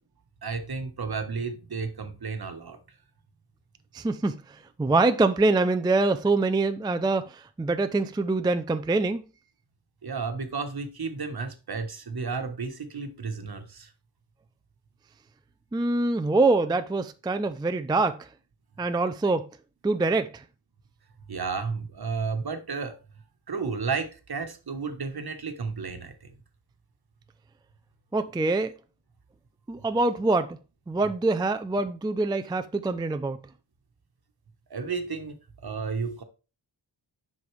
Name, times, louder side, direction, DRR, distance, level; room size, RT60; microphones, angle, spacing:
voice 1, 0.4-2.8 10.0-13.9 21.3-22.9 23.5-26.3 34.7-35.4 35.6-36.2, right 5 dB, 55° right, 1.2 m, -32 dB
voice 2, 3.9-9.2 15.7-18.3 18.8-19.5 19.8-20.4 28.1-28.7 29.7-30.6 30.9-33.4, right 3 dB, 10° right, 0.4 m, -25 dB
7.8 x 5.5 x 3.3 m
wide cardioid pair, 80°, 45 cm